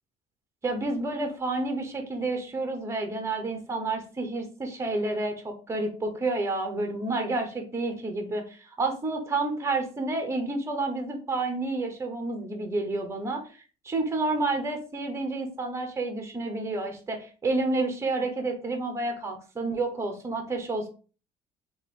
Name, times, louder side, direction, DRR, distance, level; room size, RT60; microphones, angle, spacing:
voice 1, 0.6-13.4 13.8-20.9, right 2 dB, 20° right, 5 dB, 1.1 m, -30 dB
3.2 x 3.1 x 4.3 m, 0.36 s
cardioid pair, 115°, 14 cm